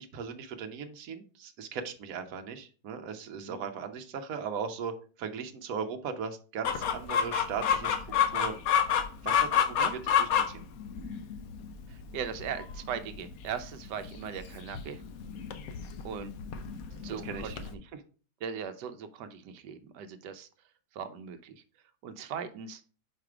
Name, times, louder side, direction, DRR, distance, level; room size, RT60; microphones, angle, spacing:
voice 1, 0.0-4.9 5.2-8.0 8.3-8.6 9.2-10.6 17.1-17.6 17.9-18.0, right 6 dB, 60° right, 6 dB, 1.2 m, -38 dB
Chicken rooster, 6.6-17.7, left 8 dB, 65° left, 1.1 m, -30 dB
voice 2, 11.9-15.0 16.0-16.3 17.0-17.8 18.4-20.5 20.9-21.6 22.0-22.8, right 7 dB, 85° right, 10 dB, 1.2 m, -39 dB
4.9 x 4.8 x 4.8 m, 0.38 s
omnidirectional pair, 1.8 m